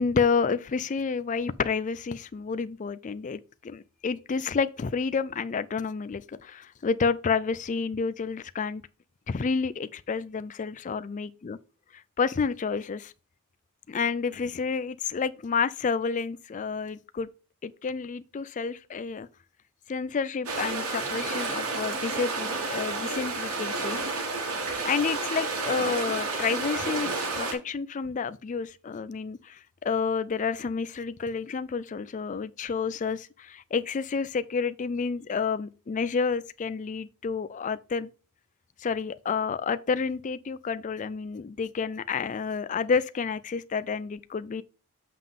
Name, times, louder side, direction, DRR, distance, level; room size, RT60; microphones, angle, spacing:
voice 1, 0.0-8.8 9.3-11.6 11.9-13.1 13.9-17.3 17.6-19.3 19.9-24.0 24.8-38.1 38.8-44.6, left 5 dB, 35° left, 0.4 m, -30 dB
sound 1, 20.4-27.5, right 3 dB, 75° right, 3.0 m, -31 dB
7.5 x 5.6 x 3.7 m
head